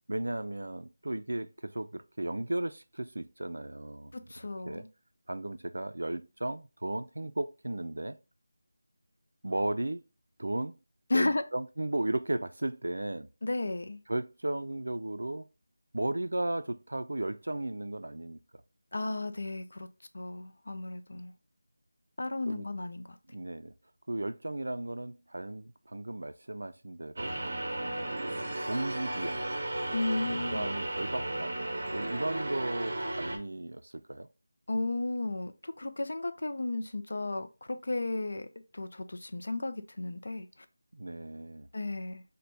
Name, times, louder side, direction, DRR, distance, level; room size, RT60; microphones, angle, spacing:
voice 1, 0.1-4.1 4.7-4.8 5.3-8.2 9.4-10.0 10.4-10.8 11.1-13.3 14.1-15.5 15.9-18.6 22.5-22.7 23.3-23.7 24.1-27.4 28.1-29.4 30.5-31.6 31.9-34.3 40.9-41.7, right 1 dB, 85° right, 0.3 m, -35 dB
voice 2, 4.1-4.9 11.1-11.4 13.4-14.0 18.9-19.9 20.1-21.3 22.2-23.2 29.9-30.7 34.7-38.5 38.7-40.5 41.7-42.2, left 2 dB, 60° left, 0.4 m, -34 dB
sound 1, 27.2-33.4, right 1 dB, 45° right, 0.6 m, -34 dB
3.3 x 2.2 x 3.9 m
figure-of-eight pair, 175°, 0 cm